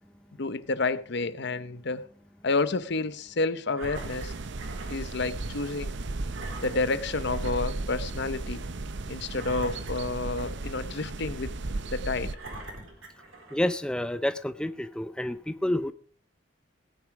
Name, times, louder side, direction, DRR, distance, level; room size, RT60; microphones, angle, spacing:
voice 1, 0.4-2.0 2.4-4.3 4.9-5.9 6.6-8.6 9.1-11.5 11.9-12.3, left 3 dB, 60° left, 14 dB, 0.9 m, -30 dB
Engine, 3.8-5.0 5.4-5.5 6.3-7.7 8.1-8.2 9.3-10.8 11.4-11.5 12.3-13.8 14.5-14.6, right 2 dB, 80° right, 4.3 m, -43 dB
sound 1, 3.9-12.4, right 2 dB, 60° right, 0.8 m, -35 dB
voice 2, 13.5-15.9, left 1 dB, 5° left, 11 dB, 0.5 m, -29 dB
17.5 x 9.9 x 4.9 m, 0.41 s
head